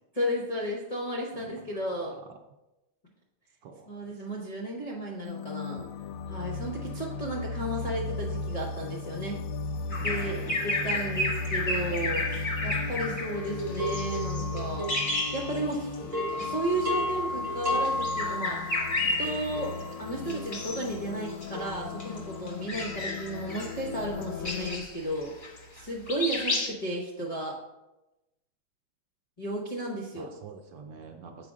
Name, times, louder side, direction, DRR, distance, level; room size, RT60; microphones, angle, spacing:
voice 1, 0.1-2.1 3.9-5.8 6.3-9.4 9.9-14.9 15.3-16.1 16.4-25.3 25.7-27.6 29.4-30.3, right 1 dB, 60° left, -2 dB, 0.4 m, -34 dB
voice 2, 3.6-4.1 10.0-11.1 22.6-22.8 30.1-31.5, right 5 dB, 70° right, 4 dB, 1.1 m, -45 dB
sound 1, 5.2-24.8, left 4 dB, 75° left, 1.2 m, -37 dB
Bird vocalization bird call bird song, 9.9-16.0 16.3-16.5 17.5-19.8 20.3-20.9 21.3-25.8 26.1-26.7, left 2 dB, 35° left, 0.8 m, -32 dB
sound 2, 13.3-15.7 16.0-22.3, left 1 dB, 40° right, 0.5 m, -34 dB
7.5 x 5.1 x 3.6 m, 0.99 s
omnidirectional pair, 2.3 m